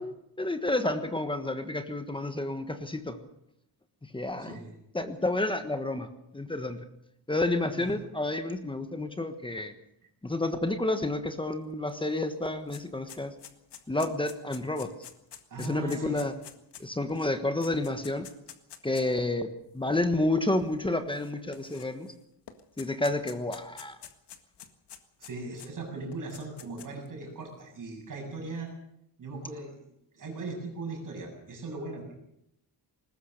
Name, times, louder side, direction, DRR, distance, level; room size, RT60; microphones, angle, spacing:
voice 1, 0.0-3.2 4.0-4.6 4.9-6.1 6.3-6.8 7.3-9.7 10.2-13.3 13.9-14.9 15.6-16.3 16.8-18.3 18.8-22.1 22.8-24.0, left 2 dB, 10° left, 8 dB, 1.3 m, -30 dB
voice 2, 4.4-4.7 7.8-7.9 15.5-16.3 25.2-28.7 29.2-29.8 30.1-32.1, right 3 dB, 50° right, 2 dB, 7.6 m, -39 dB
sound 1, 11.9-12.0 12.2-19.2 19.9-20.0 21.1-22.1 22.5-25.7 26.1-27.1, left 9 dB, 70° left, 1.9 m, -48 dB
21.0 x 20.0 x 6.7 m, 0.78 s
wide cardioid pair, 180°, 42 cm